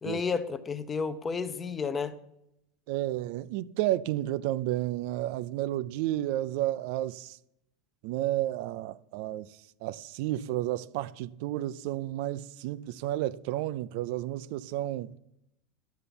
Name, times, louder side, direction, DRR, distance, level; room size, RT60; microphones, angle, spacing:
voice 1, 0.0-2.1, left 5 dB, 15° left, 0.6 m, -31 dB
voice 2, 2.9-7.4 8.0-15.1, right 14 dB, 55° right, 0.4 m, -32 dB
11.5 x 6.9 x 7.0 m
supercardioid pair, 170°, 0 cm